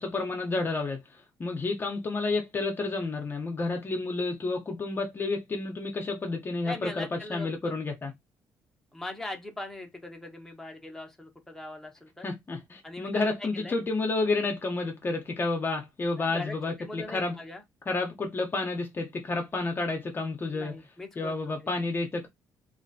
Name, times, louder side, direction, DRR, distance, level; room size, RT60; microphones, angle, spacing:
voice 1, 0.0-8.1 12.2-17.4 17.9-20.7 21.2-22.3, left 3 dB, 30° left, 0.8 m, -30 dB
voice 2, 6.6-7.7 8.9-12.3 12.8-13.8 16.2-17.6 20.5-21.4 21.6-21.7, left 2 dB, 5° left, 0.9 m, -40 dB
2.9 x 2.4 x 2.7 m
cardioid pair, 115°, 7 cm